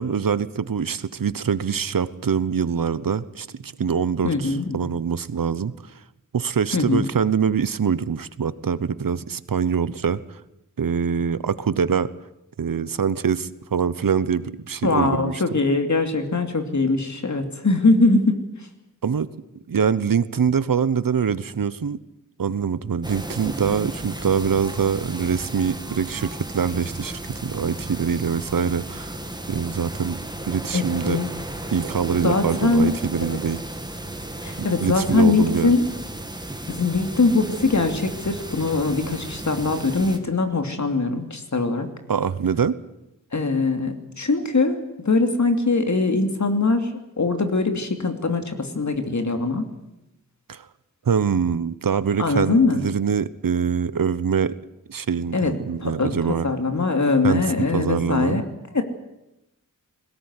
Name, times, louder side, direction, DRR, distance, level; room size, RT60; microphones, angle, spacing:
voice 1, 0.0-5.7 6.3-10.2 10.8-12.1 12.6-15.6 19.0-19.3 19.7-22.0 22.4-29.2 29.5-30.2 30.5-31.2 31.7-33.6 34.6-35.7 42.1-42.7 50.5-50.7 51.0-54.6 54.9-56.5 57.2-57.5 57.7-58.4, right 7 dB, 80° right, 16 dB, 1.0 m, -24 dB
voice 2, 4.2-4.9 6.7-7.1 14.8-18.4 30.7-31.3 32.2-32.9 33.2-33.4 34.4-35.9 36.7-41.9 43.3-46.9 47.2-49.7 52.2-52.8 55.3-58.4 58.7-58.8, left 3 dB, 60° left, 7 dB, 2.8 m, -22 dB
sound 1, 23.0-40.2, right 1 dB, 15° right, 2.4 m, -34 dB
21.5 x 17.5 x 9.8 m, 0.90 s
wide cardioid pair, 80°, 33 cm